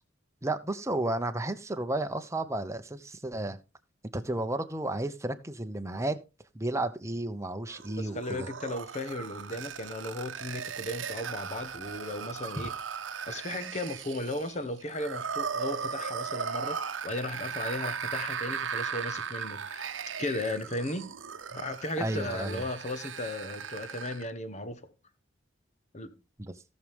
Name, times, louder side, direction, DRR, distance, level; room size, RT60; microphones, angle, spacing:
voice 1, 0.4-3.6 4.1-6.2 6.5-8.5 22.0-22.7 26.4-26.5, right 2 dB, 15° right, 0.9 m, -32 dB
sound 1, 7.7-24.3, right 6 dB, 85° right, 0.8 m, -37 dB
voice 2, 8.0-12.7 13.3-21.1 21.5-24.8 25.9-26.1, left 1 dB, 40° left, 1.2 m, -36 dB
17.0 x 6.5 x 3.5 m
head